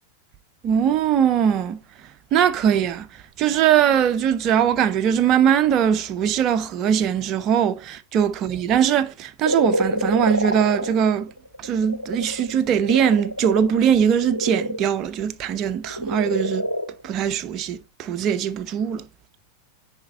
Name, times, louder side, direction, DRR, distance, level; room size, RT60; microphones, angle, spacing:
voice 1, 0.6-1.8 2.3-3.1 3.4-11.3 11.6-16.7 17.0-19.0, right 9 dB, 35° right, 0.8 m, -21 dB
sound 1, 9.4-14.8 15.8-17.1, equal, 90° right, 0.7 m, -27 dB
10.0 x 4.4 x 4.0 m
figure-of-eight pair, 90°, 0 cm